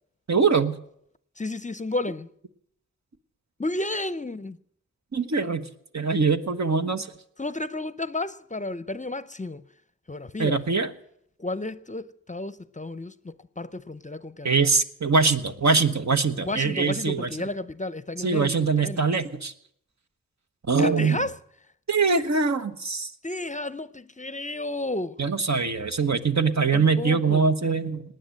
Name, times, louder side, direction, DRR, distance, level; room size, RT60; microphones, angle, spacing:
voice 1, 0.3-0.7 5.1-5.6 5.9-7.1 10.4-10.9 14.4-17.3 18.2-19.5 20.7-21.2 21.9-23.1 25.2-28.0, right 4 dB, 60° right, 1.2 m, -23 dB
voice 2, 1.4-2.3 3.6-4.6 7.4-9.7 10.1-10.7 11.4-14.7 16.4-19.0 20.8-21.4 23.2-25.2 26.7-27.5, left 2 dB, 25° left, 0.6 m, -32 dB
19.0 x 9.5 x 7.7 m
cardioid pair, 45°, 31 cm